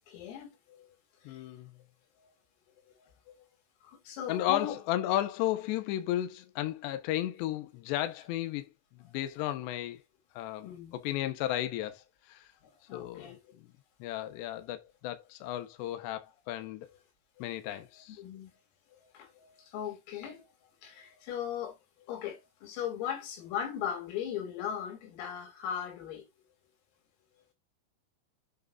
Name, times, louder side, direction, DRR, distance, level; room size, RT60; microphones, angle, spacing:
voice 1, 0.1-1.0 1.2-1.4 2.9-3.0 3.3-3.4 3.8-4.8 10.6-11.0 12.6-13.6 17.7-17.8 18.2-18.5 19.1-20.5 20.8-26.3, left 9 dB, 90° left, 5.6 m, -38 dB
voice 2, 1.3-1.7 4.3-10.0 10.4-12.5 12.9-13.7 14.0-16.9 17.4-18.2, left 13 dB, 75° left, 2.9 m, -34 dB
8.0 x 6.7 x 2.6 m
omnidirectional pair, 5.8 m